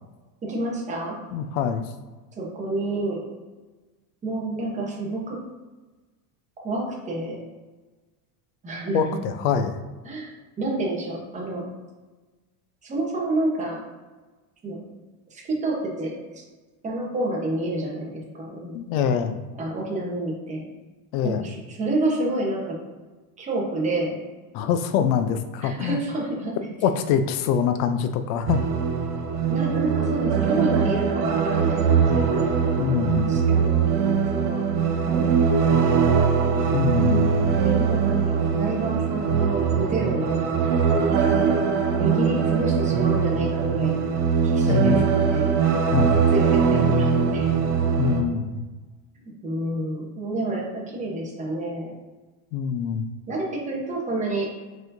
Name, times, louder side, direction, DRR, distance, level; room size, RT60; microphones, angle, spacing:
voice 1, 0.4-1.2 2.4-3.2 4.2-5.4 6.6-7.4 8.6-9.2 10.0-11.6 12.8-13.8 14.6-14.8 15.3-16.4 16.8-19.1 19.6-20.7 21.2-22.8 23.4-24.2 25.6-26.5 29.5-32.3 33.3-33.9 34.3-34.7 35.0-35.9 37.6-40.4 41.0-41.6 41.9-44.0 44.4-45.6 46.3-47.4 49.2-51.9 53.3-54.5, right 2 dB, 15° right, -3 dB, 0.9 m, -29 dB
voice 2, 1.3-1.9 8.9-9.8 18.7-19.4 21.1-21.4 24.5-26.0 26.8-28.6 32.8-33.3 36.7-37.6 44.7-45.0 45.9-46.2 48.0-48.6 52.5-53.1, left 7 dB, 70° left, 9 dB, 0.6 m, -24 dB
sound 1, 28.5-48.2, right 6 dB, 80° right, 1.0 m, -21 dB
4.6 x 4.1 x 2.6 m, 1.3 s
cardioid pair, 155°, 44 cm